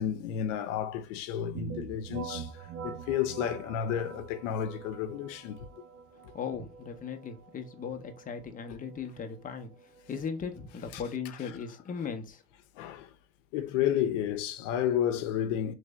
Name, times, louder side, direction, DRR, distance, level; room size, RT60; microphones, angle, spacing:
voice 1, 0.0-5.6 10.9-11.0 12.8-13.1 13.5-15.7, left 10 dB, 85° left, 0.6 m, -31 dB
sound 1, 1.5-11.1, right 6 dB, 45° right, 1.0 m, -45 dB
voice 2, 6.3-9.7 10.1-12.4, left 6 dB, 20° left, 0.7 m, -37 dB
3.1 x 2.6 x 3.3 m
supercardioid pair, 105°, 36 cm